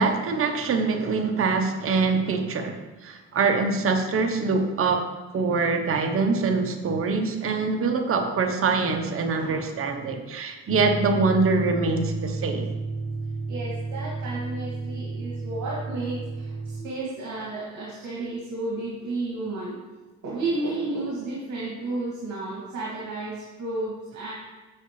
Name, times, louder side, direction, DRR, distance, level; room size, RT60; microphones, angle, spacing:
voice 1, 0.0-5.1 5.3-12.7, right 4 dB, 45° right, 5 dB, 0.9 m, -24 dB
voice 2, 9.3-9.6 13.5-19.8 20.2-24.3, right 2 dB, 70° right, -5 dB, 2.3 m, -32 dB
sound 1, 10.7-16.8, right 3 dB, 20° left, 1.2 m, -32 dB
8.8 x 6.7 x 3.2 m, 1.2 s
cardioid pair, 90°, 30 cm